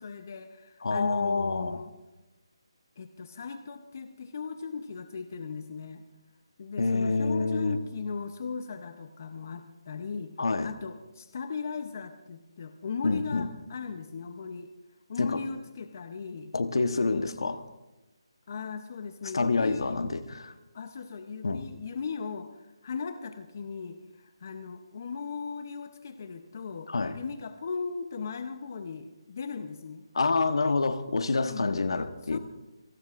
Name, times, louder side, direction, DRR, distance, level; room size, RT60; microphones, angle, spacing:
voice 1, 0.0-1.9 3.0-6.0 6.6-10.3 10.6-14.7 15.1-16.5 18.5-20.0 20.7-26.9 27.1-30.1 31.4-31.9 32.2-32.4, left 5 dB, 30° left, 9 dB, 0.7 m, -37 dB
voice 2, 0.8-1.8 6.8-7.8 10.4-10.7 13.0-13.5 15.2-15.4 16.5-17.6 19.3-20.5 21.4-21.6 26.9-27.2 30.1-32.4, left 3 dB, 60° left, 10 dB, 1.1 m, -27 dB
26.5 x 19.0 x 2.5 m, 1.0 s
hypercardioid pair, 175°, 3 cm